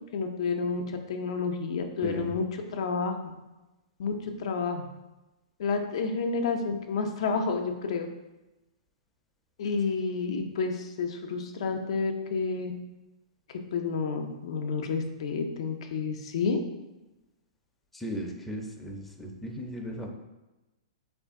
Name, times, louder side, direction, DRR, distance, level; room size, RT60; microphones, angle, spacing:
voice 1, 0.1-2.4 2.7-3.2 4.0-4.1 4.4-4.9 5.6-8.1 9.6-12.7 13.7-16.6, left 4 dB, 65° left, 5 dB, 0.4 m, -30 dB
voice 2, 2.0-2.3 17.9-20.1, right 1 dB, 5° left, 0 dB, 0.4 m, -36 dB
3.3 x 2.4 x 3.5 m, 1.0 s
hypercardioid pair, 125°, 3 cm